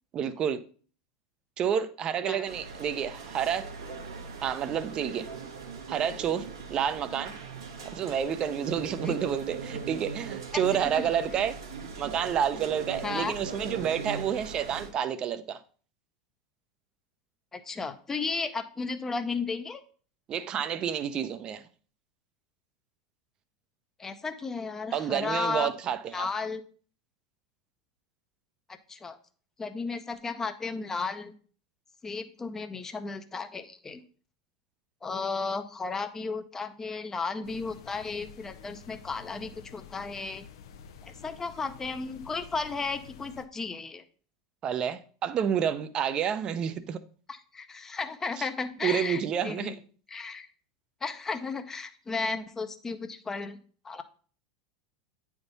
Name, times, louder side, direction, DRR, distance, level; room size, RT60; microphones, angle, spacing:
voice 1, 0.1-0.6 1.6-3.7 4.4-5.3 5.9-7.3 7.9-11.6 12.0-15.6 20.3-21.6 24.9-26.3 44.6-47.0 48.4-48.5 48.8-49.7, right 8 dB, 35° right, 0.6 m, -29 dB
sound 1, 2.4-14.9, right 5 dB, 80° right, 1.1 m, -40 dB
voice 2, 13.0-13.3 17.5-19.8 24.0-25.7 26.1-26.6 28.9-29.2 29.6-31.3 32.0-34.0 35.0-40.5 41.0-44.0 47.3-49.8 50.1-50.5 51.0-53.6 53.8-54.0, left 4 dB, 20° left, 0.7 m, -34 dB
sound 2, 37.4-43.4, left 7 dB, 70° left, 0.6 m, -50 dB
8.7 x 3.6 x 4.0 m
hypercardioid pair, 95°, 2 cm